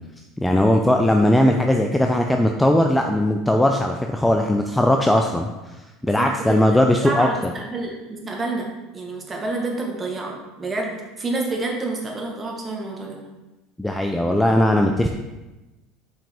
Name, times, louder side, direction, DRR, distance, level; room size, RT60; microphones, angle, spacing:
voice 1, 0.4-5.5 6.0-7.5 13.8-15.1, left 1 dB, 5° left, 3 dB, 0.4 m, -19 dB
voice 2, 6.0-8.7 8.9-10.9 11.2-13.2, right 2 dB, 20° right, 0 dB, 1.3 m, -28 dB
5.8 x 5.0 x 3.5 m, 1.1 s
supercardioid pair, 115°, 0 cm